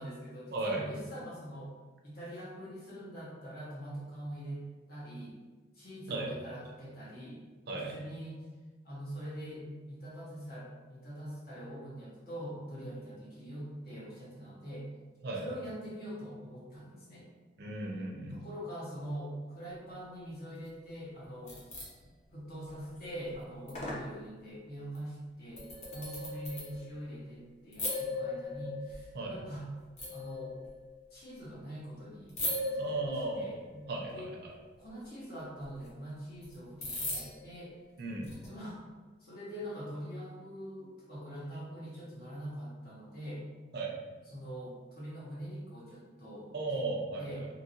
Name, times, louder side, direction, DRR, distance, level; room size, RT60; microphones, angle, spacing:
voice 1, 0.0-1.7 2.0-4.6 4.9-5.3 5.7-7.4 7.7-8.5 8.8-14.9 15.3-17.3 18.3-21.6 22.3-25.6 25.9-29.7 30.1-30.6 31.1-34.3 34.8-37.7 38.5-38.8 39.2-43.4 44.3-46.9 47.2-47.4, equal, 55° left, -7 dB, 1.1 m, -43 dB
voice 2, 0.5-0.9 6.1-6.3 7.7-7.9 15.2-15.5 17.6-18.4 29.1-29.4 32.8-33.6 33.9-34.5 38.0-38.3 43.7-44.0 46.5-47.5, right 2 dB, 55° right, 0 dB, 0.5 m, -36 dB
sound 1, 21.2-21.9 22.6-23.0 23.3-23.4 23.7-24.1 24.9-25.0 25.6-27.0 27.7-29.3 30.0-31.0 32.3-33.8 35.6-35.7 36.4-36.5 36.8-37.5 38.2-38.5, left 2 dB, 35° left, 0.7 m, -38 dB
2.8 x 2.8 x 2.7 m, 1.4 s
head